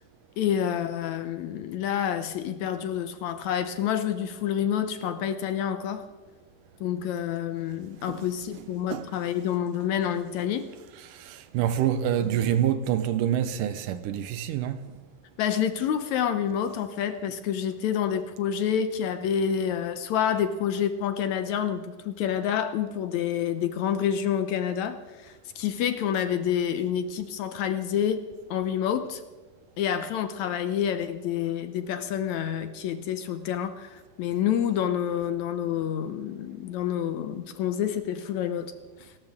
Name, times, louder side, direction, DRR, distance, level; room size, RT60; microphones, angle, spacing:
voice 1, 0.4-6.1 6.8-10.7 12.2-12.3 15.4-25.0 25.2-28.2 28.5-29.2 29.8-38.7, left 9 dB, 70° left, 1.9 m, -28 dB
voice 2, 11.1-14.9, right 10 dB, 85° right, 2.4 m, -27 dB
30.0 x 13.0 x 3.6 m
omnidirectional pair, 3.8 m